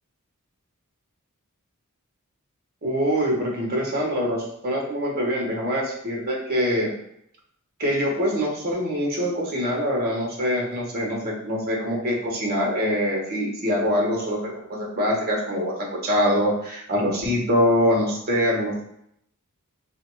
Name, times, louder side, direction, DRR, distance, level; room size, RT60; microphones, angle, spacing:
voice 1, 2.8-6.9 7.8-18.8, equal, 45° right, -2 dB, 1.2 m, -24 dB
3.1 x 2.7 x 4.5 m, 0.74 s
head